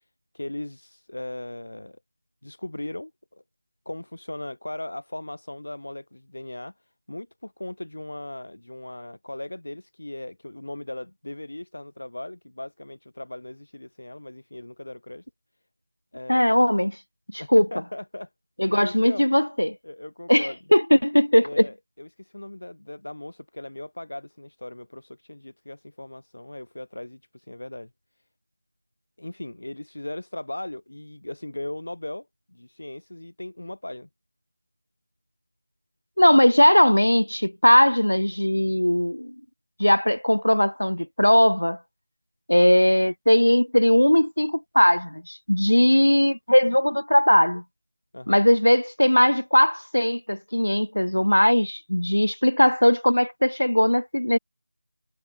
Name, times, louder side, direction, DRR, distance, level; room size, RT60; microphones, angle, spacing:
voice 1, 0.3-2.0 2.4-3.4 3.8-15.2 16.1-16.7 17.4-18.3 18.7-19.2 19.8-20.6 21.4-27.9 29.2-34.1 36.4-36.5 48.1-48.4, left 1 dB, 70° left, 4.8 m, -38 dB
voice 2, 16.3-16.9 17.3-17.7 18.6-19.8 20.3-21.7 36.2-39.3 39.8-41.8 42.5-47.6 48.3-54.4, equal, 90° left, 0.9 m, -19 dB
figure-of-eight pair, 165°, 0 cm